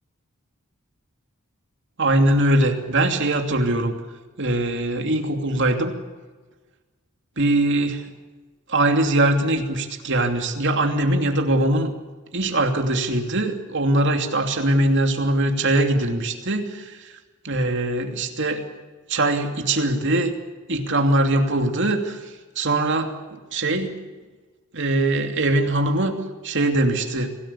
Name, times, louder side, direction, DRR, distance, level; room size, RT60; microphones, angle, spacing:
voice 1, 2.0-3.9 4.4-5.9 7.4-8.1 8.7-11.9 12.3-17.1 17.4-18.7 19.1-20.3 20.7-22.2 22.6-23.1 23.5-24.0 24.7-27.3, right 1 dB, 55° right, 4 dB, 2.9 m, -21 dB
26.5 x 18.0 x 8.5 m, 1.3 s
head